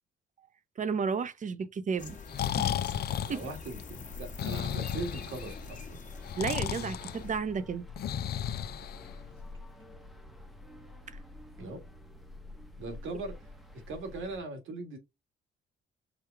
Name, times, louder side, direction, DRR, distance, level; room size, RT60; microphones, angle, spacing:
voice 1, 0.8-2.2 2.6-2.7 3.3-3.5 6.4-7.9, right 5 dB, 40° right, 0.7 m, -32 dB
sound 1, 2.0-7.4, left 4 dB, 40° left, 1.3 m, -47 dB
Breathing, 2.1-9.5, left 10 dB, 55° left, 0.4 m, -34 dB
voice 2, 3.2-6.0 11.6-11.8 12.8-13.5 13.9-15.0, right 3 dB, 80° right, 1.8 m, -40 dB
sound 2, 4.0-14.4, left 2 dB, ahead, 0.8 m, -48 dB
4.9 x 2.3 x 4.5 m
cardioid pair, 90°, 20 cm